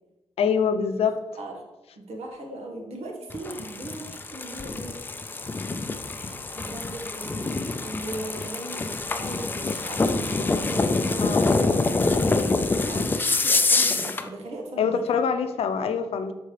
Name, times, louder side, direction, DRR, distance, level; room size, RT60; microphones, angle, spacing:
voice 1, 0.4-1.2 11.2-11.5 14.8-16.3, left 6 dB, 70° left, 8 dB, 0.7 m, -24 dB
voice 2, 1.9-5.0 6.2-15.0, right 2 dB, 85° right, 0 dB, 1.8 m, -38 dB
sound 1, 3.3-14.3, left 3 dB, 20° left, 0.4 m, -26 dB
12.0 x 4.5 x 3.4 m, 1.0 s
wide cardioid pair, 160°, 10 cm